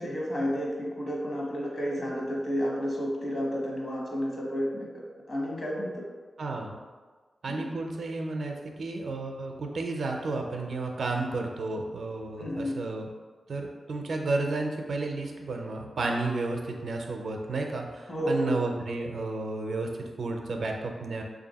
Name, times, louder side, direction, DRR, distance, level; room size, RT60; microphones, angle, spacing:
voice 1, 0.0-4.9 5.3-6.0 7.5-7.6 12.4-12.7 18.1-18.5, equal, 45° left, -3 dB, 1.0 m, -31 dB
voice 2, 6.4-6.8 7.4-13.1 13.5-21.2, right 3 dB, 70° right, 2 dB, 0.5 m, -32 dB
3.3 x 2.6 x 4.0 m, 1.4 s
wide cardioid pair, 100°, 0 cm